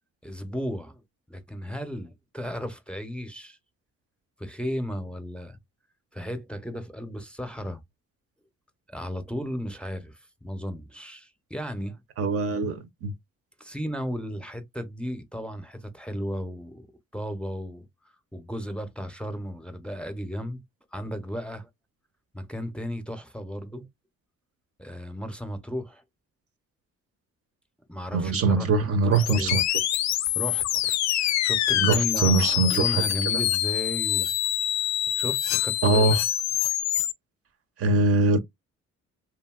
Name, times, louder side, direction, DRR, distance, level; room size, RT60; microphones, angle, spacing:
voice 1, 0.2-1.0 1.3-3.6 4.4-5.6 6.1-7.8 8.9-12.0 13.6-16.9 17.1-17.8 18.3-20.6 20.9-21.7 22.3-23.9 24.8-26.0 27.9-29.6 30.4-34.3 35.1-36.2, equal, 5° left, 0.6 m, -34 dB
voice 2, 12.2-13.1 28.1-29.6 31.8-32.9 35.8-36.2 37.8-38.4, right 3 dB, 50° right, 0.5 m, -22 dB
sound 1, 29.1-37.1, left 12 dB, 65° left, 0.4 m, -25 dB
2.7 x 2.6 x 2.3 m
cardioid pair, 90°, 30 cm